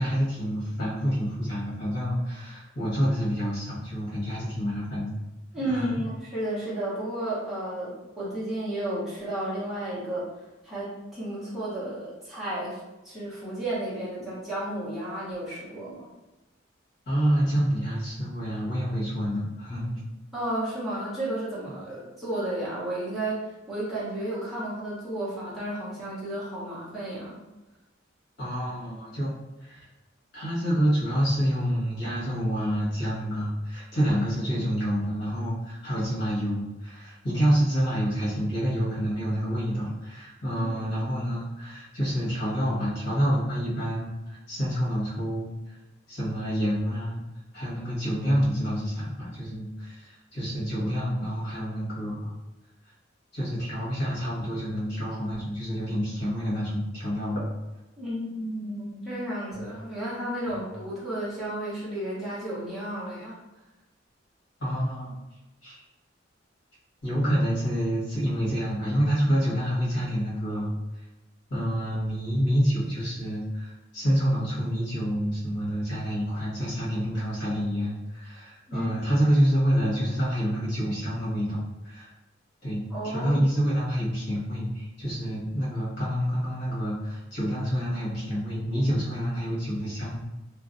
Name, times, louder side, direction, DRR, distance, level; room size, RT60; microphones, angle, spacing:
voice 1, 0.0-5.2 5.5-6.0 17.1-20.0 28.4-29.3 29.6-29.8 30.3-45.5 46.1-47.2 47.5-52.3 53.3-57.5 60.5-60.6 64.6-65.1 65.6-65.8 67.0-70.7 71.5-82.1 82.6-90.2, equal, 65° left, -8 dB, 1.3 m, -27 dB
voice 2, 5.5-10.3 10.6-12.8 13.0-16.1 20.3-27.4 40.7-41.1 58.0-63.4 78.7-78.9 82.9-83.4, right 1 dB, ahead, -11 dB, 0.8 m, -32 dB
2.6 x 2.1 x 2.5 m, 1.1 s
head